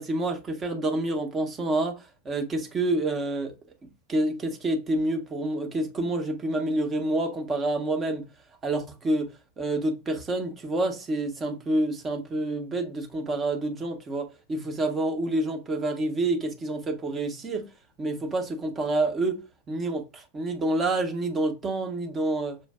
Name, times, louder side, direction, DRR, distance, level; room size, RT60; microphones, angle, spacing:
voice 1, 0.0-3.5 4.1-8.3 8.6-17.7 18.0-19.4 19.7-22.6, right 2 dB, 20° right, 0.9 m, -28 dB
6.5 x 2.5 x 2.3 m
figure-of-eight pair, 90°, 0 cm